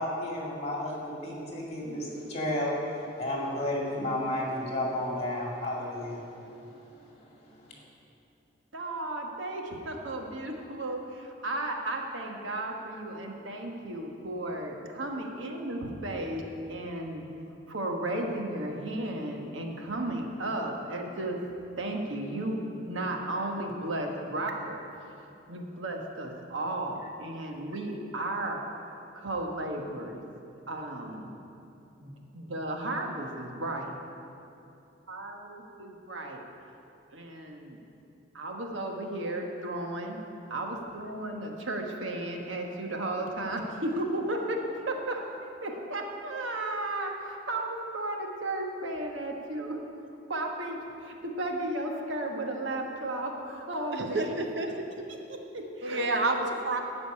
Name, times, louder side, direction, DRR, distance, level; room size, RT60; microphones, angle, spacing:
voice 1, 0.0-6.3 7.4-7.8, left 1 dB, 35° left, -3 dB, 2.2 m, -32 dB
voice 2, 8.7-16.4 16.7-17.2 17.7-21.4 21.8-24.8 25.5-28.6 29.1-30.2 30.7-31.3 32.0-33.9 35.1-36.4 37.1-37.8 38.3-40.2 40.5-49.8 50.3-54.3 55.1-56.1 56.4-56.5, right 1 dB, 85° right, 2 dB, 1.3 m, -34 dB
voice 3, 53.9-54.7 55.8-56.8, right 2 dB, 60° right, 4 dB, 0.8 m, -29 dB
12.5 x 5.2 x 8.6 m, 2.8 s
head